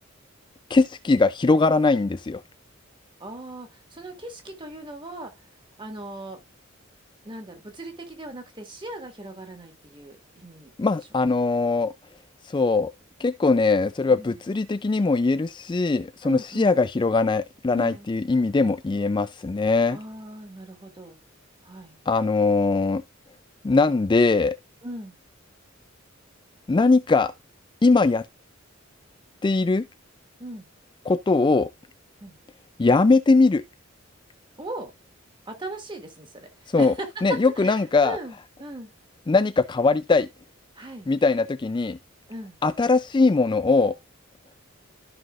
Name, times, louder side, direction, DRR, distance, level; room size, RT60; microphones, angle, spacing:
voice 1, 0.7-2.4 10.8-11.9 12.5-12.9 13.2-20.0 22.1-23.0 23.6-24.6 26.7-27.3 27.8-28.2 29.4-29.9 31.1-31.7 32.8-33.6 36.7-36.9 37.2-38.2 39.3-40.3 41.1-42.0 42.6-43.9, left 3 dB, 25° left, 0.3 m, -21 dB
voice 2, 3.2-5.3 5.8-6.4 7.2-10.7 14.1-14.4 16.2-16.8 17.7-18.1 19.9-21.2 21.6-22.0 24.8-25.1 30.4-30.7 32.2-32.4 34.6-34.9 35.5-37.1 37.6-38.9 40.8-41.1 42.3-42.6, right 1 dB, 25° right, 1.8 m, -39 dB
13.5 x 5.6 x 2.4 m
head